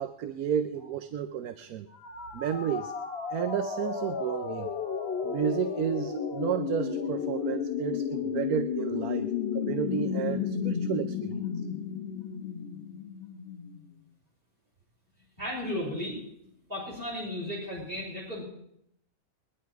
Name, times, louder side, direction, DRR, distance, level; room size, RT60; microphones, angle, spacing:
voice 1, 0.0-1.9 2.3-2.9 3.3-4.7 5.2-11.4, right 9 dB, 85° right, 10 dB, 1.2 m, -32 dB
sound 1, 1.9-13.8, left 7 dB, 45° left, 1.5 m, -33 dB
voice 2, 15.4-16.2 16.7-18.4, left 1 dB, 40° right, -4 dB, 5.3 m, -34 dB
21.5 x 11.0 x 4.7 m, 0.74 s
omnidirectional pair, 1.5 m